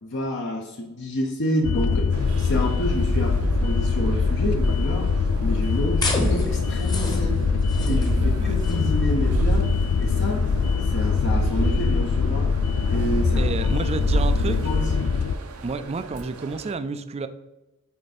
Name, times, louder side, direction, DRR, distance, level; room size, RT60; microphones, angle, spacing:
voice 1, 0.0-5.1 5.4-7.4 7.9-9.7 10.0-10.5 10.9-12.5 12.9-13.5 14.1-15.1, left 1 dB, 55° left, 2 dB, 0.7 m, -29 dB
sound 1, 1.6-15.4, left 5 dB, 80° left, 0.4 m, -23 dB
sound 2, 2.1-16.7, right 2 dB, 75° right, 0.7 m, -31 dB
sound 3, 6.0-12.0, left 1 dB, 20° left, 0.9 m, -31 dB
voice 2, 8.2-8.5 13.4-14.6 15.6-17.3, right 4 dB, 30° right, 12 dB, 0.3 m, -30 dB
8.4 x 3.4 x 4.2 m, 0.98 s
head